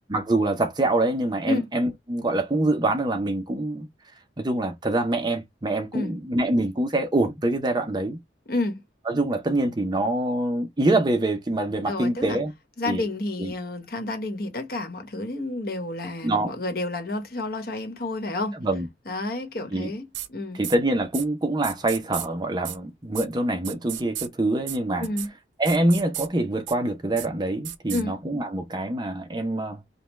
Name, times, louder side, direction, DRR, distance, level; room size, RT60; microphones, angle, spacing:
voice 1, 0.1-3.9 4.4-8.2 9.1-12.5 12.9-13.1 13.4-13.5 16.2-16.5 18.5-18.9 19.7-19.9 20.5-25.1 25.6-29.8, right 2 dB, 25° right, 0.6 m, -25 dB
voice 2, 8.5-8.8 11.9-12.4 12.8-18.6 19.1-20.6 25.0-25.3 27.9-28.1, left 2 dB, 55° left, 1.1 m, -30 dB
sound 1, 20.1-20.3 20.6-20.8 21.1-21.2 21.6-22.3 22.6-22.8 23.1-23.3 23.6-24.3 24.7-24.8 25.0-25.3 25.7-26.3 26.7-26.8 27.2-27.3 27.6-28.0, right 12 dB, 90° right, 0.5 m, -33 dB
5.3 x 2.2 x 3.1 m
head